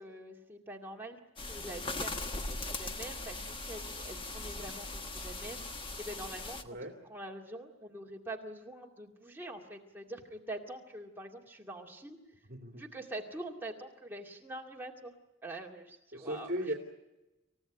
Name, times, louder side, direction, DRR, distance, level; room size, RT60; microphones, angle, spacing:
voice 1, 0.0-6.8 7.0-12.2 12.8-15.1 15.4-16.7, right 1 dB, 10° right, 0 dB, 2.2 m, -45 dB
sound 1, 1.4-6.6, left 2 dB, 25° left, 1.3 m, -40 dB
voice 2, 12.5-12.8 16.1-16.7, equal, 50° right, 1 dB, 3.1 m, -37 dB
28.0 x 16.0 x 9.4 m, 1.0 s
head